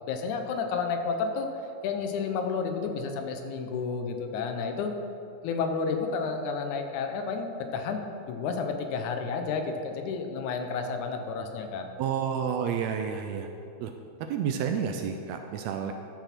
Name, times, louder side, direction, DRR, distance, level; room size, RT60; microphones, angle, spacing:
voice 1, 0.1-1.5 1.8-4.9 5.4-8.0 8.3-11.9, left 5 dB, 85° left, 5 dB, 2.2 m, -31 dB
voice 2, 12.0-13.5 13.8-13.9 14.3-15.9, right 7 dB, 80° right, 5 dB, 1.6 m, -30 dB
12.5 x 6.1 x 4.4 m, 2.7 s
omnidirectional pair, 3.4 m